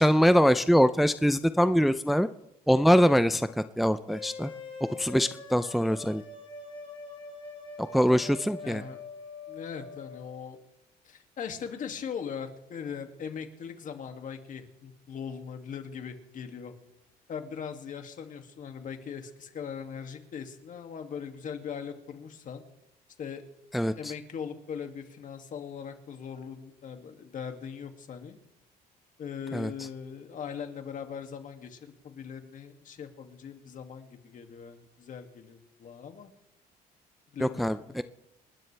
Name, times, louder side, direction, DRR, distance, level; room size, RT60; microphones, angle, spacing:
voice 1, 0.0-2.3 2.7-3.5 3.8-4.5 5.0-6.2 7.8-8.8 23.7-24.1 29.5-29.7 37.4-38.0, equal, ahead, 11 dB, 0.5 m, -23 dB
sound 1, 4.1-10.2, left 3 dB, 30° left, 6.6 m, -43 dB
voice 2, 8.6-9.0 9.5-10.6 11.0-16.7 17.3-22.6 23.2-23.4 24.0-28.4 29.2-36.3 37.3-38.0, left 7 dB, 50° left, 5 dB, 2.4 m, -40 dB
29.5 x 12.5 x 3.4 m, 0.88 s
cardioid pair, 110°, 17 cm